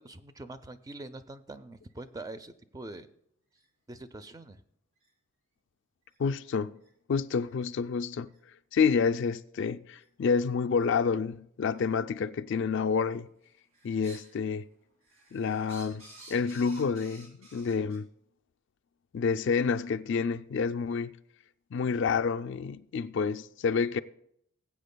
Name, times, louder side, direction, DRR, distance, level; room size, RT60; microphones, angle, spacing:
voice 1, 0.0-3.1 3.9-4.6, right 2 dB, 15° right, 0.4 m, -44 dB
sound 1, 1.9-2.0 2.8-3.0 3.6-3.7 4.2-4.3 5.0-5.1 6.1-6.2 6.8-6.9 7.4-7.5 8.3-8.4 9.1-9.2 9.9-10.1 10.8-10.9 11.7-11.8 12.8-13.1 13.4-14.4 14.7-18.0, right 2 dB, 70° right, 3.3 m, -54 dB
voice 2, 6.2-6.8 7.1-8.3 8.7-13.3 13.8-14.6 15.3-18.1 19.1-21.2 21.7-24.0, left 5 dB, 55° left, 0.4 m, -29 dB
20.0 x 8.3 x 2.2 m
head